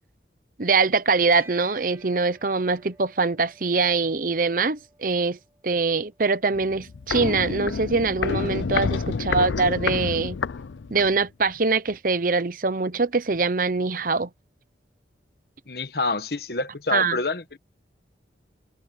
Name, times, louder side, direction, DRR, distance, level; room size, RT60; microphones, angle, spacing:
voice 1, 0.6-5.4 5.6-10.4 10.9-14.3 16.9-17.2, right 4 dB, 50° right, 0.8 m, -23 dB
Bell, 1.3-11.0, right 2 dB, 15° right, 7.0 m, -56 dB
Walk footsteps, 6.5-11.2 11.5-11.6, left 5 dB, 90° left, 0.5 m, -28 dB
voice 2, 15.7-17.6, left 3 dB, 55° left, 1.3 m, -27 dB
head